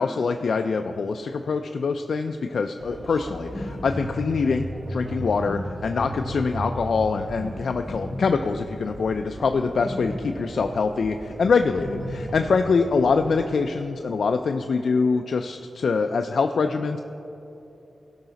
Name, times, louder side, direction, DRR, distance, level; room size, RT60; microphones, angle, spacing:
voice 1, 0.0-17.0, left 4 dB, 70° left, 6 dB, 0.4 m, -24 dB
sound 1, 2.8-13.5, equal, 10° left, 1.2 m, -35 dB
17.0 x 5.7 x 4.0 m, 3.0 s
wide cardioid pair, 85°, 0 cm